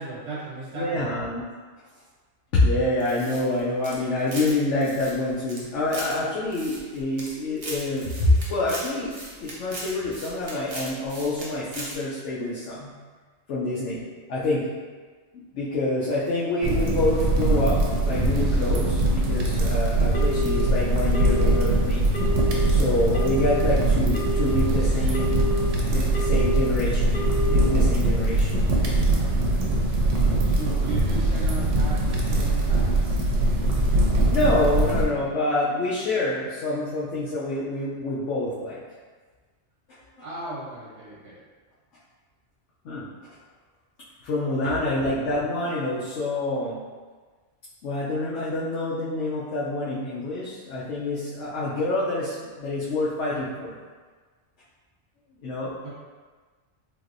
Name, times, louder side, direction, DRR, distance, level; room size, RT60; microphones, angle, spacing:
voice 1, 0.0-1.1 30.4-33.2 40.2-41.4 44.5-45.0 55.8-55.9, right 2 dB, 60° right, -9 dB, 1.3 m, -36 dB
voice 2, 0.8-1.4 2.5-9.1 9.4-12.9 13.5-14.0 14.3-14.7 15.5-22.0 22.7-25.4 25.9-28.7 33.8-34.0 34.3-38.8 42.8-43.1 44.2-46.8 47.8-53.8 55.4-55.7, left 2 dB, 75° left, -9 dB, 1.0 m, -27 dB
sound 1, 3.0-4.5 4.8-6.1 6.5-7.3 7.6-11.5 11.7-11.9, right 2 dB, 35° right, 0.6 m, -38 dB
sound 2, 16.6-35.1, right 2 dB, 85° right, 0.9 m, -22 dB
Telephone, 20.1-20.7 21.1-21.7 22.1-22.7 23.1-23.7 24.1-24.7 25.1-25.7 26.1-26.7 27.1-27.7, left 1 dB, 45° left, 0.6 m, -29 dB
3.5 x 2.8 x 2.5 m, 1.4 s
omnidirectional pair, 1.2 m